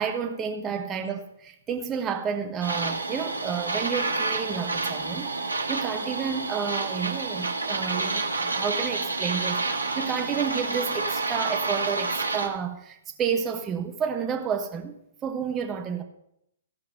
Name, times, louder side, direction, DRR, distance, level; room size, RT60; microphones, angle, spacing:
voice 1, 0.0-15.0 15.2-16.0, right 7 dB, 20° right, 1.2 m, -30 dB
sound 1, 2.6-12.5, right 3 dB, 80° right, 1.8 m, -29 dB
15.5 x 5.7 x 6.7 m
figure-of-eight pair, 120°, 0 cm